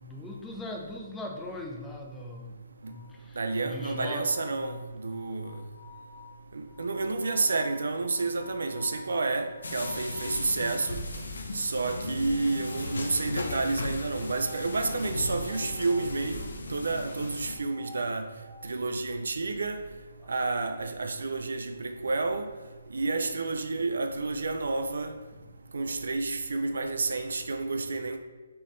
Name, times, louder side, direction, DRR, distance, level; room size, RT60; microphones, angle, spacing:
voice 1, 0.0-2.6 2.9-4.3 4.6-4.8 20.2-20.3, left 2 dB, 10° left, 0.5 m, -40 dB
sound 1, 2.8-10.9 12.2-13.5 14.2-16.2 17.4-18.8, left 2 dB, 20° right, 0.9 m, -50 dB
voice 2, 3.4-4.8 5.0-5.6 6.8-11.0 11.5-18.2 18.6-19.8 20.3-22.5 22.9-25.1 25.7-28.2, right 3 dB, 70° right, 0.4 m, -30 dB
sound 2, 9.6-17.6, left 2 dB, 75° left, 0.7 m, -36 dB
4.2 x 3.6 x 3.1 m
figure-of-eight pair, 145°, 0 cm